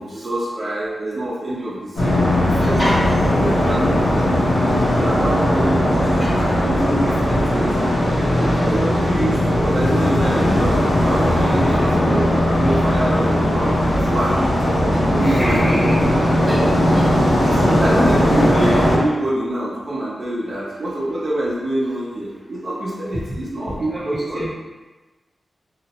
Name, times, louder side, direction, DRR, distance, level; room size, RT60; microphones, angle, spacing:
voice 1, 0.0-4.3 4.6-8.0 8.3-13.7 14.0-14.4 14.8-15.6 16.4-16.7 17.4-24.4, right 1 dB, 45° right, -7 dB, 0.7 m, -26 dB
sound 1, 2.0-19.0, left 1 dB, 80° left, 1.0 m, -18 dB
voice 2, 2.6-3.0 6.2-6.3 12.7-12.8 15.2-15.9 16.5-16.6 16.9-17.0 23.8-24.5, equal, 5° left, -9 dB, 0.9 m, -25 dB
2.8 x 2.0 x 2.8 m, 1.2 s
wide cardioid pair, 145°, 0 cm